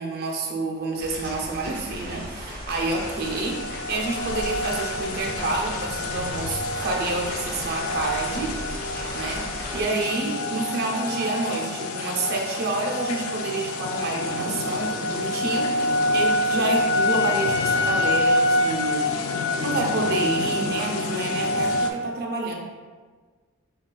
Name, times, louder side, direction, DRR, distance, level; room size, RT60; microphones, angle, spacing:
voice 1, 0.0-8.6 9.1-19.2 19.6-22.5, right 3 dB, 45° right, 1 dB, 0.5 m, -29 dB
sound 1, 1.0-9.8, equal, 10° left, 1.5 m, -36 dB
sound 2, 2.9-21.9, left 2 dB, 85° left, 0.4 m, -26 dB
6.6 x 2.3 x 2.2 m, 1.5 s
head